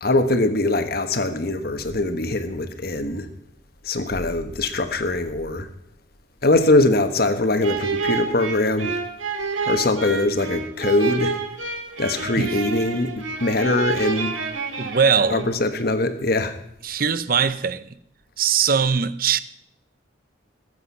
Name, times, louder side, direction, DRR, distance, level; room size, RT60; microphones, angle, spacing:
voice 1, 0.0-3.3 3.8-5.7 6.4-8.9 9.7-11.4 12.0-14.3 15.3-16.5, left 2 dB, 50° left, 1.3 m, -22 dB
sound 1, 7.6-15.7, right 4 dB, 85° right, 1.9 m, -29 dB
voice 2, 14.8-15.5 16.8-17.9 18.4-19.4, right 6 dB, 45° right, 0.7 m, -21 dB
20.5 x 7.9 x 5.6 m
head